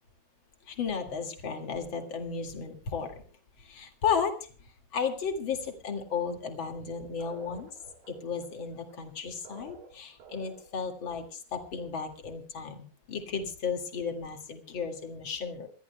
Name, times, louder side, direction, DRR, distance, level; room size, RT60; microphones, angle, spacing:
voice 1, 0.7-3.2 3.6-4.5 4.9-7.7 8.1-15.7, left 6 dB, 40° left, 4 dB, 2.1 m, -34 dB
sound 1, 7.2-10.9, right 6 dB, 65° right, 4.3 m, -50 dB
27.5 x 14.0 x 2.2 m, 0.39 s
omnidirectional pair, 4.7 m